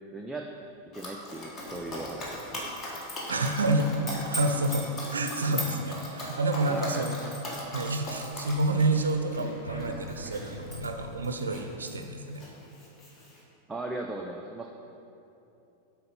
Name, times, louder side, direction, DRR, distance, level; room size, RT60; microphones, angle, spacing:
voice 1, 0.1-0.5 0.9-2.6 6.7-7.1 13.7-14.7, right 2 dB, 10° right, 1 dB, 0.4 m, -37 dB
sound 1, 0.6-4.8 5.3-11.0, left 1 dB, 75° left, 1.1 m, -49 dB
Dog, 0.9-12.0 12.3-13.4, equal, 25° left, 1.4 m, -39 dB
voice 2, 3.3-3.9 4.3-7.2 7.7-12.4, right 2 dB, 70° right, 6 dB, 0.4 m, -28 dB
7.6 x 4.4 x 5.4 m, 2.9 s
figure-of-eight pair, 90°, 0 cm